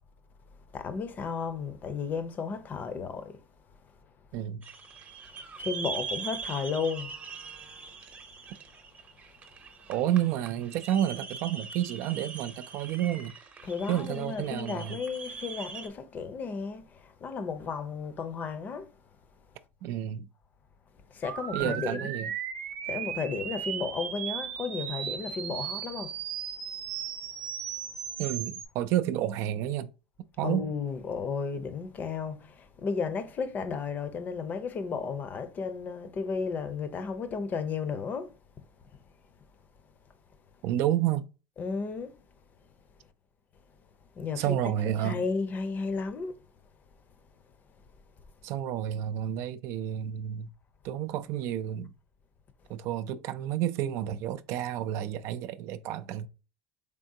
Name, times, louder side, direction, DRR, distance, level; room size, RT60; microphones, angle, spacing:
voice 1, 0.7-3.4 5.3-7.1 9.6-9.7 13.6-19.0 21.1-22.1 22.9-26.2 30.4-38.4 41.6-42.2 44.1-44.6 45.0-46.4, left 5 dB, 35° left, 0.6 m, -34 dB
voice 2, 4.3-4.6 9.9-13.3 13.9-15.0 19.8-20.3 21.5-22.3 28.2-29.9 30.4-30.7 40.6-41.3 44.4-45.2 48.4-50.5 50.8-51.9 52.7-56.3, right 11 dB, 60° right, 0.3 m, -30 dB
sound 1, 4.6-15.9, right 5 dB, 25° right, 0.8 m, -42 dB
sound 2, 21.2-28.6, right 9 dB, 85° right, 0.7 m, -36 dB
3.7 x 3.4 x 2.7 m
supercardioid pair, 110°, 5 cm